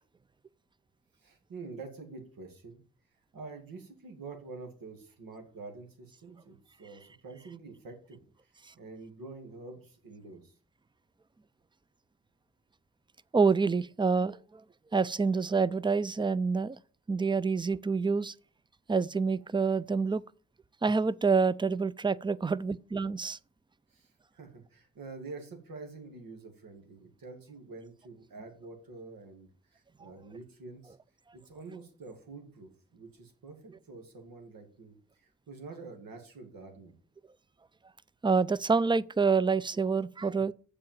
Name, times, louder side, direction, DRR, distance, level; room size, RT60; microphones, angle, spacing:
voice 1, 1.2-2.8 3.3-8.2 8.7-10.5 23.9-31.0 31.3-36.9, right 3 dB, 85° right, 2.0 m, -47 dB
voice 2, 13.3-14.6 14.9-16.8 17.1-18.3 18.9-20.2 20.8-23.4 30.0-30.1 38.2-40.5, right 4 dB, 15° right, 0.4 m, -27 dB
7.6 x 4.9 x 7.2 m
cardioid pair, 65°, 33 cm